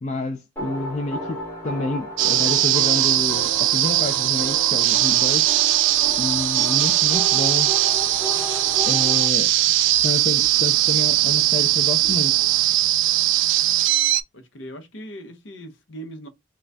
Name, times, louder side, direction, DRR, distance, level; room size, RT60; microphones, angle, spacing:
voice 1, 0.0-5.5 6.2-7.9 8.9-9.5 10.0-12.3, left 2 dB, 35° left, 0.3 m, -29 dB
sound 1, 0.6-9.3, right 1 dB, 10° left, 0.9 m, -33 dB
sound 2, 2.2-14.2, right 14 dB, 65° right, 0.3 m, -20 dB
sound 3, 7.1-12.9, left 1 dB, 15° right, 0.8 m, -47 dB
voice 2, 14.3-16.3, right 1 dB, 65° left, 0.7 m, -40 dB
3.8 x 2.2 x 3.3 m
head